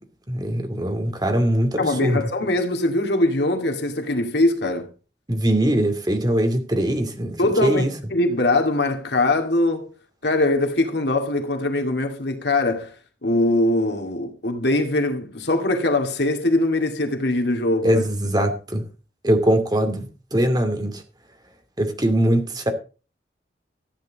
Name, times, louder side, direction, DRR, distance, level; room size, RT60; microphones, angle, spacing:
voice 1, 0.3-2.2 5.3-8.0 17.8-18.8 19.2-21.0 21.8-22.7, right 1 dB, 25° right, 2.4 m, -21 dB
voice 2, 1.8-4.9 7.4-9.9 10.2-12.9 13.2-18.0, left 2 dB, 70° left, 2.3 m, -22 dB
14.0 x 9.5 x 4.1 m
head